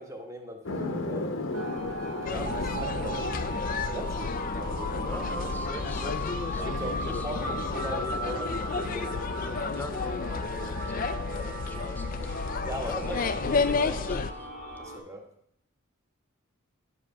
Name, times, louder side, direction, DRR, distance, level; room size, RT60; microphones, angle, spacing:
voice 1, 0.0-1.4 2.0-5.3 6.6-9.2 11.9-12.0 12.7-13.2 13.9-14.0 14.8-15.2, equal, 15° right, 3 dB, 1.3 m, -40 dB
sound 1, 0.6-11.3, left 2 dB, 65° left, 0.9 m, -38 dB
sound 2, 1.5-15.0, right 1 dB, 75° right, 2.4 m, -37 dB
sound 3, 2.3-14.3, left 4 dB, 40° left, 0.4 m, -32 dB
voice 2, 5.0-7.3 9.4-12.4 12.8-14.5, left 1 dB, 10° left, 6 dB, 0.7 m, -43 dB
11.0 x 4.9 x 5.8 m, 0.71 s
head